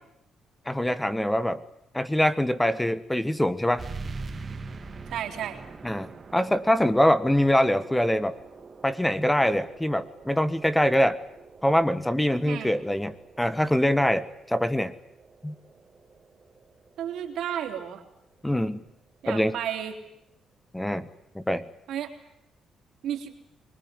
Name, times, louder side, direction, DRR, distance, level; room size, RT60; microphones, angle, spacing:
voice 1, 0.6-1.6 1.9-3.9 5.8-8.4 8.8-11.2 11.6-14.9 15.4-15.5 18.4-18.8 19.3-19.5 20.7-21.1 21.3-21.6, left 1 dB, 10° left, 13 dB, 1.4 m, -24 dB
sound 1, 3.8-18.9, right 4 dB, 35° right, 2.2 m, -44 dB
voice 2, 5.1-5.6 12.4-12.7 17.0-18.0 19.2-20.0 21.9-22.1 23.0-23.3, right 10 dB, 75° right, 4 dB, 3.7 m, -32 dB
25.0 x 20.5 x 9.8 m, 0.80 s
cardioid pair, 90°, 0 cm